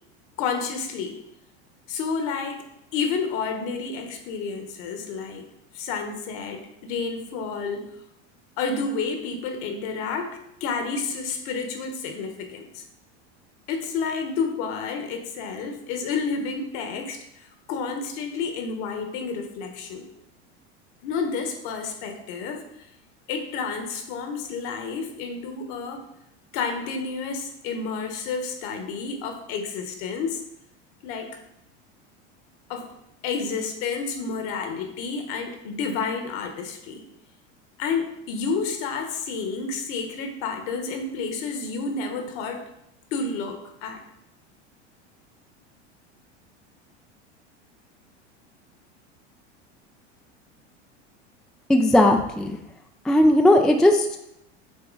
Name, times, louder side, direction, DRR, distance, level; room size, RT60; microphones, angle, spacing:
voice 1, 0.4-1.1 1.9-2.6 2.9-5.5 5.7-7.8 8.6-12.8 13.7-20.1 21.0-22.6 23.3-26.0 26.5-30.4 31.0-31.3 32.7-32.9 33.2-37.0 37.8-42.6 43.1-44.0, left 5 dB, 60° left, 5 dB, 1.4 m, -30 dB
voice 2, 51.7-52.6 53.1-54.2, left 1 dB, ahead, 4 dB, 0.4 m, -17 dB
7.0 x 4.2 x 4.0 m, 0.82 s
hypercardioid pair, 105°, 34 cm